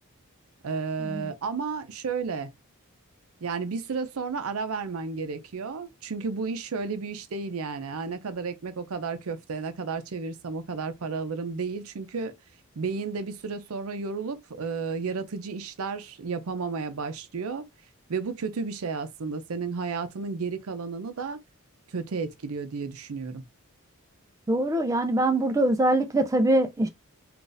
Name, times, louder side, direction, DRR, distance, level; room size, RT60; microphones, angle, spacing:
voice 1, 0.6-2.5 3.4-12.3 12.8-17.7 18.1-21.4 21.9-23.4, right 4 dB, 75° right, 0.5 m, -32 dB
voice 2, 24.5-26.9, right 1 dB, 15° right, 0.3 m, -23 dB
3.9 x 2.4 x 2.5 m
head